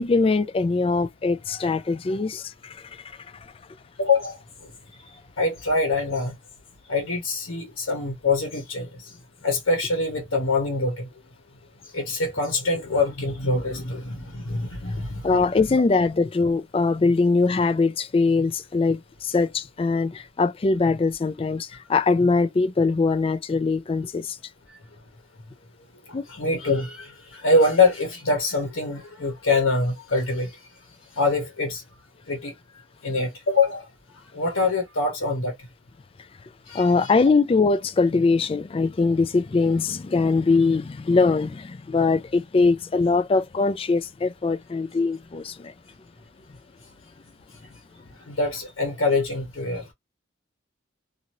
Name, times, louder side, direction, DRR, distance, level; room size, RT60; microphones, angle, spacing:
voice 1, 0.0-2.8 15.2-24.4 26.1-26.2 36.7-45.7, left 4 dB, 30° left, 0.3 m, -22 dB
voice 2, 4.0-4.4 5.4-6.3 6.9-9.1 9.4-11.1 11.9-15.4 26.1-30.6 31.2-31.8 32.3-32.5 33.0-33.9 34.3-35.5 36.7-37.1 48.3-49.8, left 3 dB, 80° left, 1.0 m, -24 dB
2.7 x 2.5 x 2.9 m
head